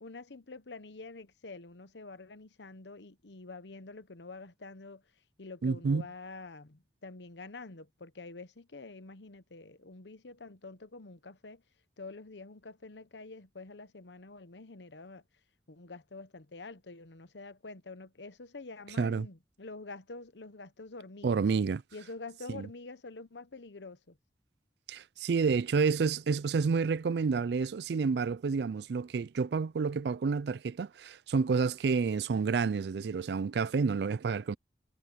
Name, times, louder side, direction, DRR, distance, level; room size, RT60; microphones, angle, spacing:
voice 1, 0.0-5.0 5.4-11.6 12.0-15.2 15.7-21.4 21.9-24.2, left 3 dB, 85° left, 1.0 m, -47 dB
voice 2, 5.6-6.0 19.0-19.3 21.2-21.8 22.5-22.7 24.9-34.6, right 5 dB, 70° right, 0.4 m, -29 dB
head